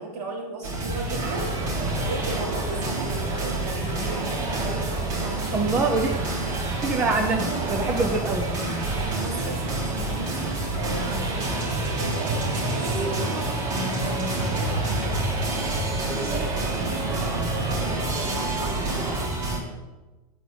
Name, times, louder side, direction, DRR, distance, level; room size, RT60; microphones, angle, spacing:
voice 1, 0.0-1.5 2.0-4.4 5.2-5.6 6.1-6.2 8.9-14.8 16.1-19.0, right 2 dB, 65° right, 0 dB, 3.1 m, -36 dB
sound 1, 0.6-19.6, right 2 dB, 50° right, 3.7 m, -28 dB
sound 2, 1.1-19.3, right 3 dB, 25° right, 1.1 m, -34 dB
voice 2, 5.5-6.1 6.8-8.5, right 3 dB, 5° right, 4 dB, 0.3 m, -24 dB
9.2 x 5.0 x 7.7 m, 1.1 s
supercardioid pair, 175°, 21 cm